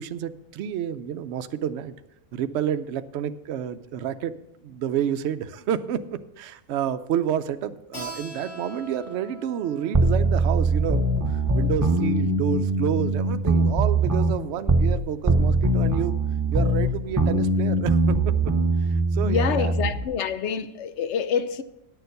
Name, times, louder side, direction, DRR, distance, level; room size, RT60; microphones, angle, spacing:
voice 1, 0.0-1.9 2.3-4.3 4.6-16.1 16.5-18.5 18.8-19.7, right 9 dB, 65° right, 0.8 m, -29 dB
Keyboard (musical), 7.9-13.2, right 2 dB, 80° left, 3.8 m, -44 dB
sound 1, 9.9-15.0 15.3-20.0, right 2 dB, 20° right, 0.5 m, -22 dB
voice 2, 19.2-21.6, left 7 dB, 60° left, 0.9 m, -26 dB
9.9 x 6.9 x 6.5 m
omnidirectional pair, 1.4 m